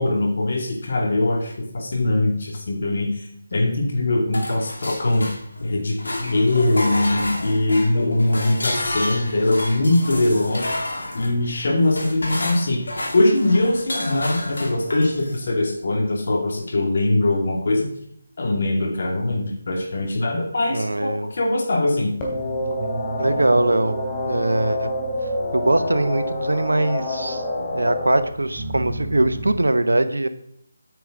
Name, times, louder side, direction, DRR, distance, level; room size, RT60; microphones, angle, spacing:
voice 1, 0.0-3.3 3.5-5.3 5.6-10.7 11.1-17.9 18.4-22.1, left 2 dB, 60° left, 1 dB, 2.4 m, -21 dB
sound 1, 4.3-5.7 6.0-15.4, left 1 dB, 75° left, 2.6 m, -30 dB
voice 2, 20.7-21.3 23.2-24.0 24.3-24.9 25.5-27.4 27.7-30.3, right 2 dB, 85° right, 11 dB, 1.0 m, -21 dB
sound 2, 22.2-28.2, left 1 dB, 25° left, 3.1 m, -27 dB
sound 3, 22.2-29.6, right 3 dB, 20° right, 3.6 m, -36 dB
9.0 x 9.0 x 3.8 m, 0.71 s
figure-of-eight pair, 155°, 0 cm